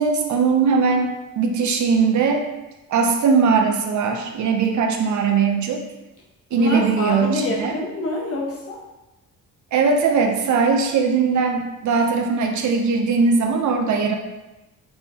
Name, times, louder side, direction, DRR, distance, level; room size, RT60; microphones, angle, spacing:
voice 1, 0.0-2.4 2.9-5.8 6.5-7.7 9.7-14.2, right 5 dB, 55° right, 4 dB, 0.7 m, -20 dB
voice 2, 6.5-8.8, left 1 dB, 45° left, -1 dB, 1.0 m, -26 dB
4.4 x 3.7 x 2.8 m, 1.0 s
cardioid pair, 140°, 34 cm